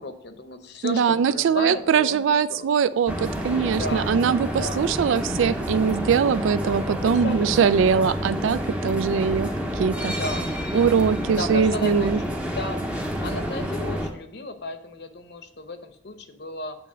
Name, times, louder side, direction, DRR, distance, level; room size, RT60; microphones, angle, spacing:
voice 1, 0.0-2.2 2.5-2.7 3.6-4.2 4.4-4.9 7.0-8.1 10.1-10.5 11.3-12.8 13.2-16.8, left 2 dB, 55° left, 8 dB, 0.8 m, -34 dB
voice 2, 0.8-10.2 10.7-12.2, right 6 dB, 75° right, 15 dB, 0.3 m, -22 dB
sound 1, 3.1-14.1, equal, 5° right, 0.7 m, -29 dB
8.8 x 3.3 x 6.1 m, 0.73 s
head